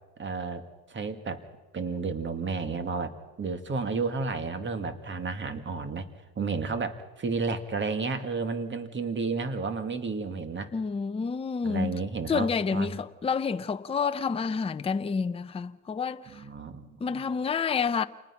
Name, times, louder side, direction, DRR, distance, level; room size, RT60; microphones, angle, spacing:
voice 1, 0.2-1.4 1.7-6.1 6.4-10.7 11.6-13.0 16.3-17.2, right 4 dB, 25° right, 2.1 m, -32 dB
voice 2, 10.7-12.0 12.3-16.4 17.0-18.0, left 5 dB, 15° left, 0.7 m, -29 dB
28.0 x 19.5 x 5.9 m
supercardioid pair, 110°, 42 cm